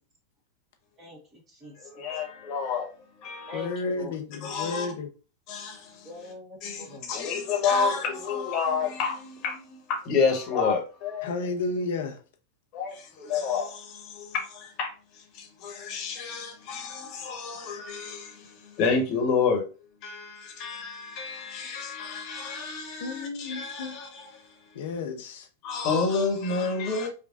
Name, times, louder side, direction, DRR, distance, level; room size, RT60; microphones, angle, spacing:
voice 1, 1.0-2.2 3.5-4.2 6.0-7.1, left 2 dB, 25° right, 1.4 m, -44 dB
voice 2, 2.5-2.8 4.4-4.8 7.1-8.0 8.3-9.1 10.1-10.8 12.8-12.9 13.3-13.6 14.8-14.9 15.9-16.4 16.7-16.8 17.3-17.5 18.8-19.6 20.6-20.8 21.2-21.3 22.3-22.7 23.6-23.7 25.7-27.1, left 5 dB, 40° left, 1.2 m, -26 dB
voice 3, 3.5-5.1 11.2-12.2 23.0-24.1 24.7-25.5, left 3 dB, 55° left, 0.7 m, -32 dB
5.1 x 2.3 x 2.5 m
figure-of-eight pair, 90°, 0 cm